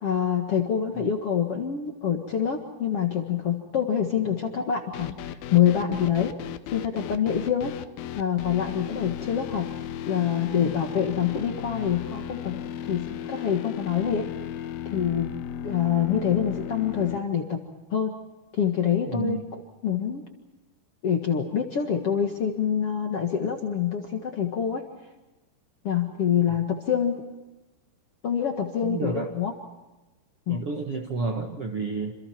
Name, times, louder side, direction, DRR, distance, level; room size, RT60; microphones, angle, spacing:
voice 1, 0.0-6.3 6.7-7.8 8.2-9.7 10.1-12.6 12.9-14.3 14.9-15.3 15.6-17.6 17.9-18.1 18.5-19.4 19.8-20.2 21.0-24.8 25.8-27.2 28.2-29.5 30.5-30.6, left 8 dB, 50° left, 3 dB, 1.9 m, -26 dB
sound 1, 4.9-17.2, left 9 dB, 75° left, 2.5 m, -35 dB
voice 2, 19.1-19.4 28.8-29.3 30.5-32.1, right 4 dB, 55° right, 3 dB, 1.6 m, -30 dB
28.0 x 27.5 x 4.5 m, 1.1 s
omnidirectional pair, 4.8 m